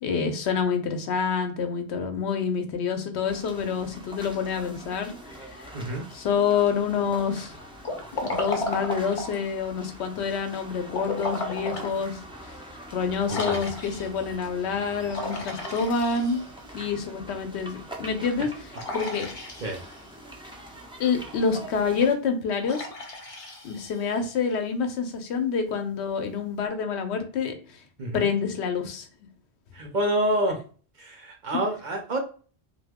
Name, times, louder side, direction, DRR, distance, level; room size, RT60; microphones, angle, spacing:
voice 1, 0.0-5.7 6.1-7.6 8.2-12.2 12.9-16.5 16.7-18.5 18.9-19.3 21.0-22.9 23.6-27.5 28.1-29.1, left 6 dB, 75° left, 6 dB, 0.9 m, -27 dB
sound 1, 3.2-22.2, right 1 dB, 10° right, 0.3 m, -44 dB
voice 2, 5.7-6.1 13.3-13.6 19.6-19.8 28.0-28.3 29.7-30.6 31.0-32.2, right 1 dB, 50° right, 2 dB, 0.7 m, -27 dB
Liquid, 7.8-9.4 10.9-11.9 12.4-12.5 13.3-14.2 15.1-16.7 18.7-20.1 22.6-24.3, left 2 dB, 40° left, 0.6 m, -34 dB
2.7 x 2.3 x 3.4 m, 0.40 s
omnidirectional pair, 1.1 m